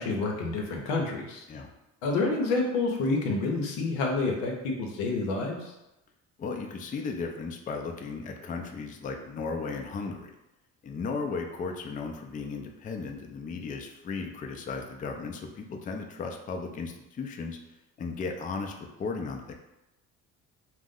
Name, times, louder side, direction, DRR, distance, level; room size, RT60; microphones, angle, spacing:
voice 1, 0.0-1.4 2.0-5.7, left 3 dB, 85° left, 1 dB, 0.7 m, -28 dB
voice 2, 6.4-10.3 10.8-17.6 18.0-19.5, left 4 dB, 25° left, 3 dB, 0.4 m, -35 dB
2.6 x 2.1 x 3.6 m, 0.93 s
supercardioid pair, 70°, 35 cm